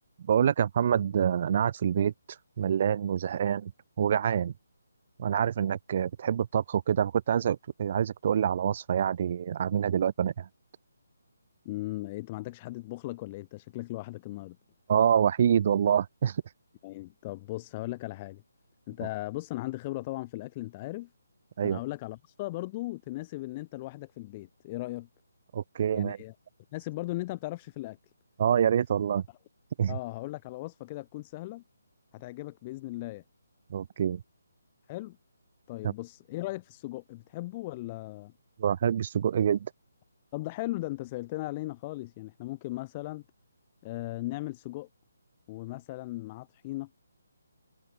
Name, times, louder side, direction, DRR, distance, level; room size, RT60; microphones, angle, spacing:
voice 1, 0.3-2.1 2.6-3.7 4.0-4.5 5.2-10.5 14.9-16.4 21.6-21.8 25.5-26.2 28.4-29.2 29.8-30.0 33.7-34.2 35.8-35.9 38.6-39.6, right 8 dB, 40° right, 0.7 m, -26 dB
voice 2, 11.6-14.6 16.8-18.4 18.9-21.1 21.6-25.1 25.9-26.3 26.7-28.0 29.9-31.6 32.1-33.2 34.9-35.2 35.7-38.3 40.3-43.2 43.8-44.9 45.5-46.9, left 19 dB, 25° left, 2.2 m, -37 dB
figure-of-eight pair, 145°, 0 cm